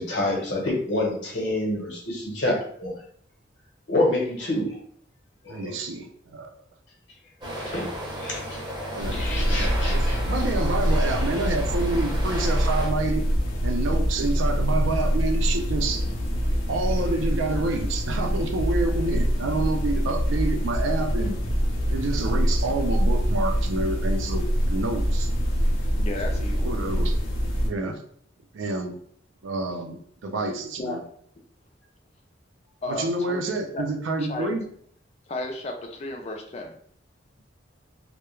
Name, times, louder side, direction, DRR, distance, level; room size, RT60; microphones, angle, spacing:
voice 1, 0.0-2.9 3.9-4.7 5.4-5.7 7.6-7.9 8.2-8.4 9.1-10.2, left 1 dB, 70° left, -3 dB, 0.9 m, -27 dB
voice 2, 5.5-6.5 8.9-13.2 13.6-16.0 16.7-21.3 21.9-25.3 26.6-27.1 27.6-28.0 28.5-28.9 29.4-30.0 30.2-31.0 32.9-34.6, right 2 dB, 85° right, 3 dB, 0.4 m, -28 dB
sound 1, 7.4-12.9, equal, 25° right, 0.6 m, -34 dB
sound 2, 9.0-27.7, equal, 90° left, 0.5 m, -25 dB
voice 3, 26.0-26.7 30.8-31.0 32.8-33.4 33.7-33.8 34.2-34.6 35.3-36.7, left 2 dB, 35° left, 3 dB, 0.3 m, -33 dB
2.2 x 2.1 x 3.0 m, 0.62 s
head